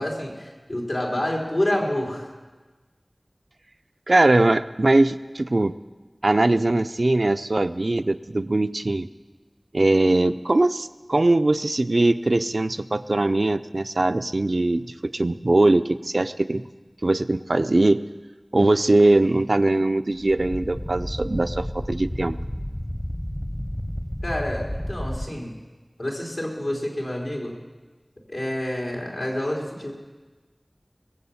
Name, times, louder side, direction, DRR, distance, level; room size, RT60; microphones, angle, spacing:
voice 1, 0.0-2.3 24.2-25.5 26.0-27.5 28.3-29.9, left 1 dB, 80° left, -2 dB, 3.5 m, -28 dB
voice 2, 4.1-5.7 6.2-9.1 9.7-16.6 17.0-18.0 18.5-22.4, right 2 dB, 75° right, 11 dB, 0.5 m, -21 dB
sound 1, 20.1-25.3, equal, 20° left, 0.8 m, -31 dB
22.0 x 7.7 x 7.0 m, 1.3 s
wide cardioid pair, 45°, 0 cm